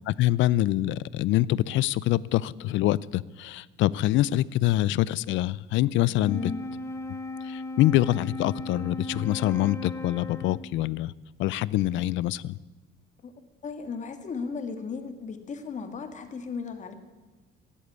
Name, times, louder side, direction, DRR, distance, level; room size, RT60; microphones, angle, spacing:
voice 1, 0.1-6.4 7.5-11.1 11.4-12.6, left 15 dB, 70° left, 22 dB, 0.5 m, -25 dB
Wind instrument woodwind instrument, 6.1-10.9, left 2 dB, 15° left, 0.7 m, -37 dB
voice 2, 6.2-6.6 13.2-13.3 13.6-16.9, left 5 dB, 35° left, 8 dB, 1.8 m, -35 dB
16.5 x 8.6 x 9.4 m, 1.2 s
cardioid pair, 130°, 21 cm